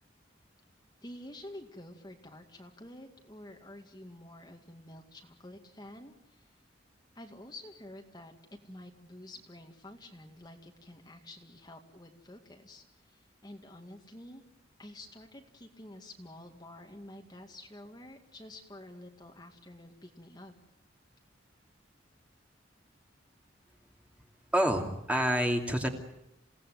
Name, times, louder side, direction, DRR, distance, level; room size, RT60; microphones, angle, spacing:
voice 1, 1.0-6.6 7.1-14.4 14.8-20.5, left 1 dB, 20° left, 3 dB, 2.2 m, -49 dB
voice 2, 24.5-25.9, equal, 5° right, 3 dB, 2.8 m, -27 dB
28.5 x 18.0 x 9.3 m, 0.82 s
head